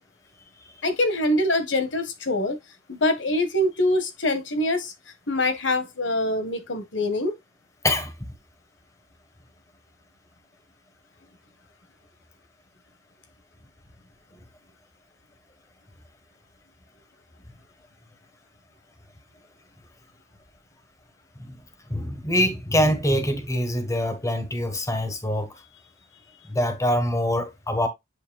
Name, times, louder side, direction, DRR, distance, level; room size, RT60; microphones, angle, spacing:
voice 1, 0.8-2.6 2.9-4.9 5.3-7.3, left 1 dB, 80° left, 1.6 m, -24 dB
voice 2, 21.9-25.5 26.5-27.9, left 1 dB, 15° left, 1.4 m, -24 dB
8.7 x 5.3 x 2.3 m
head